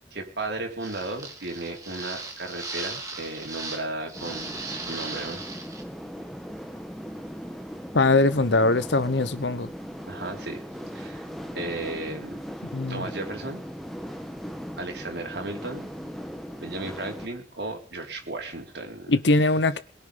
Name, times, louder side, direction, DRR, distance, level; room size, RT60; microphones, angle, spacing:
voice 1, 0.1-5.4 10.1-10.6 10.9-11.3 11.5-12.4 12.9-13.6 14.8-15.9 16.6-19.1, right 2 dB, 70° right, 4.3 m, -35 dB
sound 1, 0.8-3.8 4.1-5.8, right 3 dB, 20° right, 3.2 m, -37 dB
sound 2, 4.1-17.3, equal, ahead, 1.6 m, -39 dB
voice 2, 7.9-9.7 12.7-13.0 19.1-19.8, left 2 dB, 75° left, 1.0 m, -21 dB
22.0 x 10.5 x 5.2 m
head